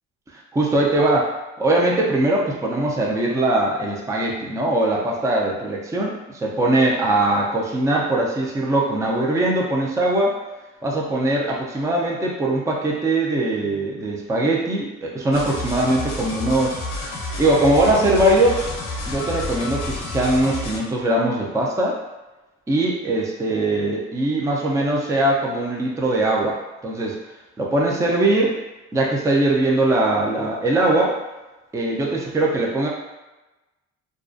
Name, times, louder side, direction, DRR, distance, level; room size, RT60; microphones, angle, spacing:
voice 1, 0.3-1.3 1.6-10.4 10.8-16.8 17.4-18.7 19.1-22.0 22.7-27.2 27.6-28.5 28.9-31.1 31.7-32.9, right 1 dB, 10° right, -2 dB, 0.4 m, -21 dB
sound 1, 15.3-20.8, left 2 dB, 65° left, 0.6 m, -30 dB
2.4 x 2.2 x 2.5 m, 1.1 s
cardioid pair, 90°, 30 cm